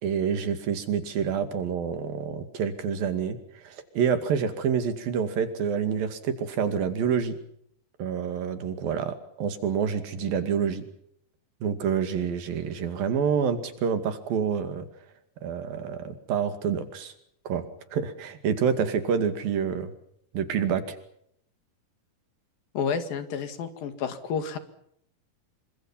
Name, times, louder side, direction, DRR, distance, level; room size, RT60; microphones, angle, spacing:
voice 1, 0.0-7.4 8.0-10.8 11.6-14.9 15.4-17.1 17.5-17.6 17.9-19.9 20.3-21.0, right 7 dB, 90° right, 9 dB, 4.1 m, -27 dB
voice 2, 22.8-24.6, left 6 dB, 80° left, 9 dB, 4.0 m, -30 dB
27.5 x 24.5 x 5.7 m, 0.71 s
omnidirectional pair, 4.0 m